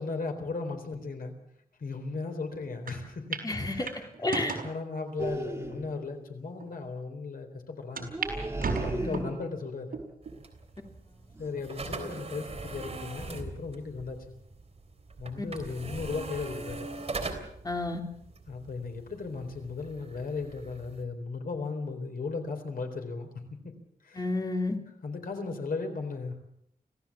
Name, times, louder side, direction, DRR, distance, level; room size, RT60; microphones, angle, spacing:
voice 1, 0.0-1.3 1.8-3.4 3.7-3.9 4.6-8.1 8.6-10.0 11.4-14.3 15.2-17.0 18.5-23.3 23.6-23.7 24.0-24.2 25.0-26.3, left 4 dB, 70° left, 5 dB, 4.0 m, -36 dB
sound 1, 2.9-3.0 3.3-3.5 3.9-4.7 5.4-5.5 6.2-6.3 6.6-6.7 8.0-8.3 8.6-9.4 9.9-10.4 10.9-11.0 12.1-12.6, right 4 dB, 65° right, 4.8 m, -34 dB
voice 2, 3.4-3.9 4.2-4.6 9.0-9.2 15.4-15.5 17.6-18.0 24.1-24.8, left 2 dB, 25° left, 3 dB, 3.0 m, -30 dB
sound 2, 5.2-6.1 8.1-9.7 11.3-11.7 12.0-12.4 12.8-13.0, right 2 dB, 15° right, 1.5 m, -37 dB
sound 3, 10.2-21.0, right 3 dB, 40° right, 3.4 m, -42 dB
25.5 x 16.0 x 7.3 m, 0.74 s
wide cardioid pair, 135°, 16 cm